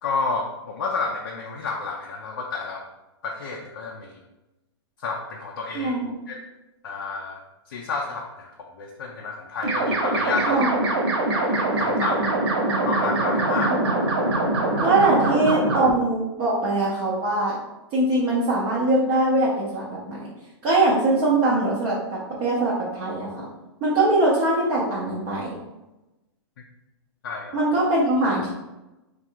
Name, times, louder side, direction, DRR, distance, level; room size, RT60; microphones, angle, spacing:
voice 1, 0.0-2.9 3.2-4.2 5.0-6.0 6.3-6.4 6.8-7.4 7.7-10.6 11.3-12.3 12.8-13.8 27.2-27.6, left 4 dB, 50° left, 0 dB, 0.5 m, -30 dB
voice 2, 5.7-6.1 10.5-10.8 13.6-14.0 14.8-17.6 17.9-20.3 20.6-23.5 23.8-25.5 27.5-28.5, right 2 dB, 15° right, -7 dB, 0.5 m, -22 dB
sound 1, 9.6-15.9, right 2 dB, 65° right, 1.0 m, -23 dB
3.6 x 2.4 x 4.4 m, 1.0 s
hypercardioid pair, 175°, 14 cm